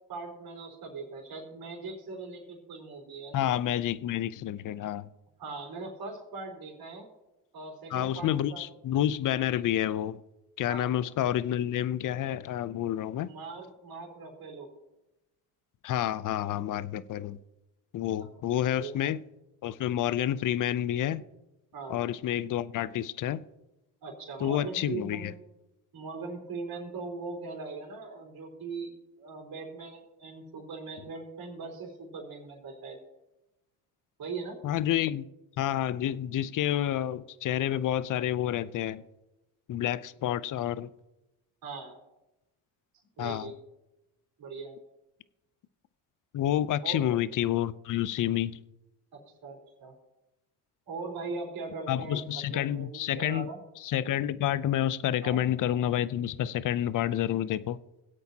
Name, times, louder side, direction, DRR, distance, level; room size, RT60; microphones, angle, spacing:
voice 1, 0.1-3.5 5.4-7.1 7.5-8.7 10.7-11.0 13.2-14.7 18.2-18.3 18.7-19.0 21.7-22.1 24.0-25.4 25.9-33.0 34.2-34.6 41.6-42.0 43.2-43.5 44.4-44.8 46.8-47.0 49.1-50.0 50.9-53.6 55.2-55.4, right 4 dB, 55° right, 4.1 m, -40 dB
voice 2, 3.3-5.1 7.9-10.2 10.6-13.3 15.8-17.4 17.9-19.2 19.6-21.2 21.9-23.4 24.4-25.3 34.6-35.3 35.6-39.0 39.7-40.9 43.2-43.5 46.3-48.6 51.9-53.5 53.8-57.8, left 11 dB, 45° left, 0.6 m, -29 dB
22.0 x 8.1 x 2.9 m
supercardioid pair, 75°, 44 cm